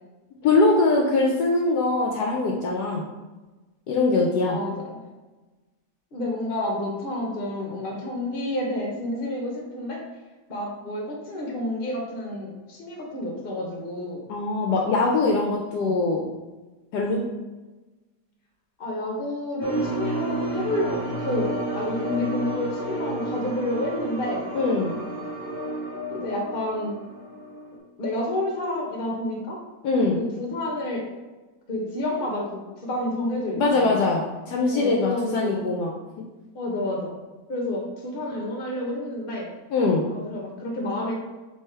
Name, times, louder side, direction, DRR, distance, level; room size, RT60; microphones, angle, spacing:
voice 1, 0.4-3.0 3.9-4.6 14.3-16.2 16.9-17.2 24.5-24.9 29.8-30.2 33.6-35.9 39.7-40.0, left 3 dB, 70° left, 0 dB, 1.1 m, -22 dB
voice 2, 4.4-5.0 6.1-10.0 10.5-14.2 15.8-16.1 18.8-24.5 26.1-27.0 28.0-29.6 30.1-31.1 31.7-34.0 34.7-35.7 36.5-37.2 37.5-39.5 40.1-41.1, left 1 dB, 40° left, -1 dB, 0.9 m, -29 dB
sound 1, 19.6-27.8, right 1 dB, 55° right, 0.7 m, -31 dB
3.4 x 3.3 x 4.3 m, 1.2 s
omnidirectional pair, 1.9 m